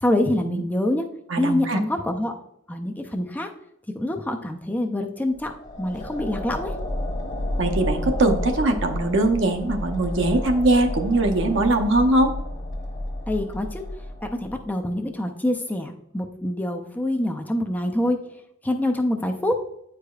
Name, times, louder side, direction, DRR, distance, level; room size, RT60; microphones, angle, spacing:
voice 1, 0.0-1.1 1.4-2.4 2.7-3.5 3.9-5.5 5.8-6.8 13.3-13.8 14.2-18.2 18.6-19.6, left 1 dB, 10° left, 3 dB, 0.4 m, -25 dB
voice 2, 1.3-1.8 7.6-12.3, right 2 dB, 60° right, 4 dB, 0.7 m, -21 dB
sound 1, 5.3-14.7, left 1 dB, 35° left, 1.1 m, -31 dB
9.0 x 4.8 x 2.3 m, 0.77 s
head